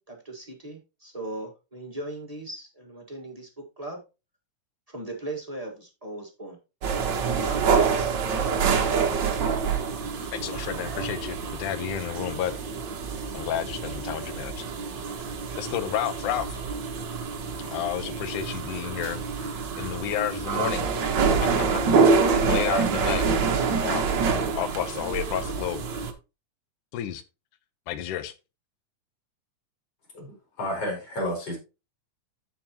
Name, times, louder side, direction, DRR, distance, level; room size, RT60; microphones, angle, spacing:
voice 1, 0.0-4.0 4.9-6.6 7.4-8.6, right 2 dB, 20° right, 0.9 m, -38 dB
sound 1, 6.8-26.1, right 5 dB, 55° right, 1.3 m, -26 dB
voice 2, 10.3-12.6 13.3-14.6 15.6-16.6 17.6-21.1 21.4-21.7 22.3-23.2 23.8-24.1 24.6-25.8 26.9-27.2 27.9-28.3, left 11 dB, 80° left, 2.4 m, -31 dB
voice 3, 30.1-31.6, left 1 dB, 50° left, 5.0 m, -31 dB
14.5 x 4.9 x 2.9 m
omnidirectional pair, 3.6 m